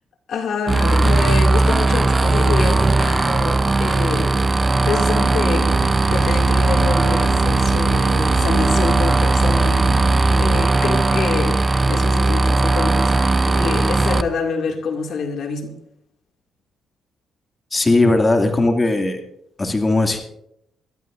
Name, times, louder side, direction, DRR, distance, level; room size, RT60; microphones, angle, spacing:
voice 1, 0.3-4.4 4.7-5.7 6.1-10.1 10.4-15.7, left 5 dB, 65° left, 2.3 m, -26 dB
sound 1, 0.7-14.2, right 2 dB, 25° right, 0.6 m, -17 dB
sound 2, 5.6-10.7, right 11 dB, 60° right, 0.7 m, -29 dB
voice 2, 17.7-19.2 19.6-20.2, left 2 dB, 25° left, 2.3 m, -17 dB
22.5 x 13.0 x 2.6 m
cardioid pair, 90°, 0 cm